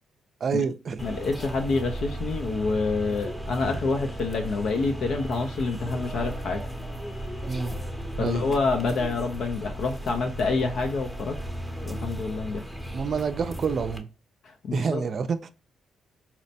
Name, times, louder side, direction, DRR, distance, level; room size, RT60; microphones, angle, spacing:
voice 1, 0.4-1.0 7.5-7.7 8.2-8.4 12.9-14.1 14.7-15.5, right 5 dB, 50° right, 0.4 m, -28 dB
voice 2, 1.0-6.6 8.2-11.4 11.8-12.6 14.4-15.1, left 3 dB, 65° left, 0.5 m, -27 dB
sound 1, 1.0-14.0, equal, 5° left, 0.7 m, -35 dB
4.1 x 2.1 x 2.7 m
cardioid pair, 90°, 0 cm